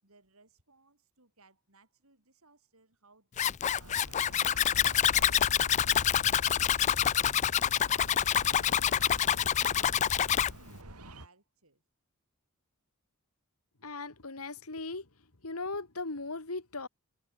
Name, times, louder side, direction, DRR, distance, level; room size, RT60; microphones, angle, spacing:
voice 1, 0.0-4.1 4.4-8.2 8.7-10.4 10.7-11.8, right 3 dB, 70° right, 6.9 m, -63 dB
Zipper (clothing), 3.4-10.5, left 10 dB, 30° left, 0.3 m, -27 dB
sound 1, 3.8-11.3, right 2 dB, 90° right, 6.2 m, -48 dB
voice 2, 13.8-15.0 15.4-16.9, left 3 dB, 75° left, 2.2 m, -38 dB
head